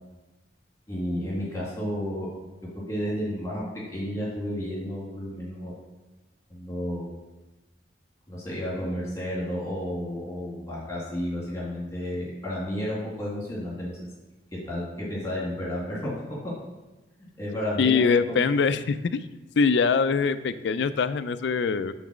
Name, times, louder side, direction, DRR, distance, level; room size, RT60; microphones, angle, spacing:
voice 1, 0.9-2.3 2.7-3.6 3.9-5.7 6.5-7.1 8.3-14.0 14.7-16.1 17.4-18.4, equal, 15° left, -6 dB, 2.1 m, -32 dB
voice 2, 17.8-19.3 19.6-21.9, left 5 dB, 70° left, 12 dB, 0.4 m, -23 dB
5.9 x 4.0 x 6.2 m, 1.1 s
head